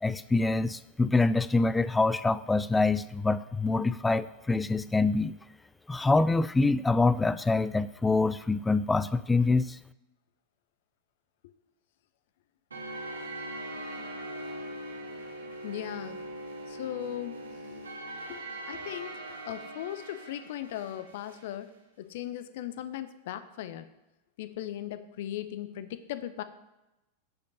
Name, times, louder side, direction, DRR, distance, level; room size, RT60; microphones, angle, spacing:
voice 1, 0.0-5.3 5.9-9.8, left 3 dB, 10° left, 15 dB, 0.3 m, -25 dB
sound 1, 12.7-21.5, right 1 dB, 75° right, 1.7 m, -41 dB
voice 2, 15.6-16.2 16.7-17.4 17.7-17.8 18.3-21.7 22.0-23.9 24.4-26.4, left 12 dB, 55° left, 13 dB, 0.6 m, -38 dB
10.5 x 5.3 x 5.4 m, 0.96 s
figure-of-eight pair, 90°, 0 cm